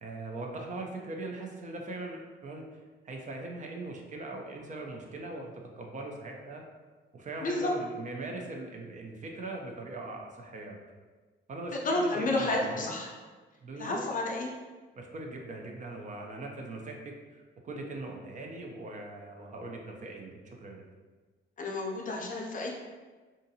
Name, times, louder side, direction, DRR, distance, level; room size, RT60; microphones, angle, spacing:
voice 1, 0.0-2.6 3.0-6.6 7.1-10.8 11.5-13.0 13.6-14.1 15.0-20.8, right 2 dB, 40° right, 1 dB, 0.5 m, -40 dB
voice 2, 7.4-7.7 11.7-13.1 13.7-14.5 21.6-22.7, left 2 dB, 40° left, -1 dB, 0.6 m, -31 dB
2.7 x 2.4 x 2.7 m, 1.4 s
cardioid pair, 90°, 20 cm